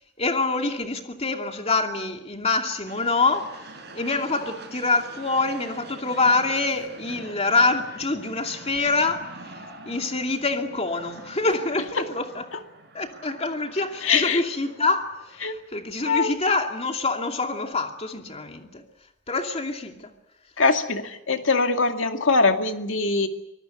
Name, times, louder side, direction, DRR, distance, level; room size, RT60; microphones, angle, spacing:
voice 1, 0.2-3.6 3.9-9.3 9.8-12.4 12.9-18.8 19.3-20.1, left 3 dB, 35° left, 2.6 m, -25 dB
sound 1, 2.8-16.0, right 2 dB, 60° right, 5.8 m, -44 dB
voice 2, 14.0-14.4 15.4-15.6 16.0-16.4 20.6-23.3, left 4 dB, 90° left, 2.2 m, -22 dB
24.5 x 19.5 x 8.3 m
head